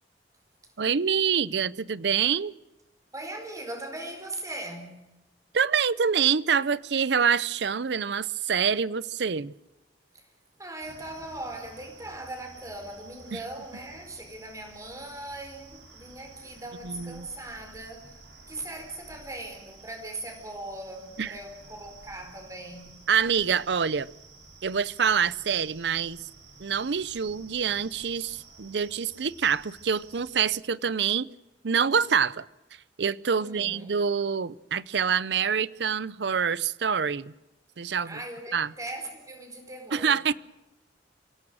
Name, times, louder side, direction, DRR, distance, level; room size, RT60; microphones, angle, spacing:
voice 1, 0.8-2.5 5.5-9.5 13.3-13.4 16.8-17.3 21.2-21.3 23.1-24.1 24.6-26.2 26.6-31.3 31.6-32.4 33.0-37.3 37.8-38.2 38.5-38.7 39.9-40.3, right 6 dB, 70° right, 0.6 m, -26 dB
voice 2, 3.1-5.0 10.1-10.3 10.6-18.2 18.5-23.0 33.3-34.0 38.0-40.2, right 2 dB, 20° right, 4.5 m, -40 dB
sound 1, 10.8-30.4, right 3 dB, 90° right, 6.5 m, -51 dB
25.5 x 17.0 x 6.4 m
head